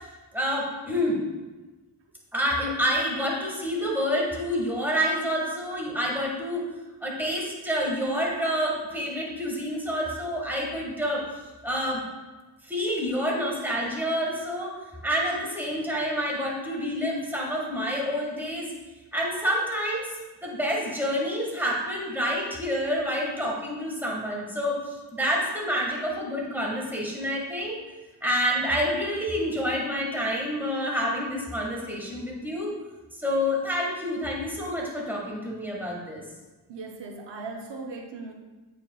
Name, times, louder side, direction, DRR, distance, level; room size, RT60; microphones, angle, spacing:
voice 1, 0.3-1.2 2.3-6.7 7.0-11.3 11.6-12.0 12.6-18.7 19.1-20.1 20.4-27.8 28.2-32.7 33.1-36.2, equal, 5° right, -3 dB, 1.7 m, -28 dB
voice 2, 36.7-38.3, right 3 dB, 85° right, 2 dB, 0.8 m, -38 dB
8.3 x 5.0 x 2.4 m, 1.2 s
cardioid pair, 65°, 42 cm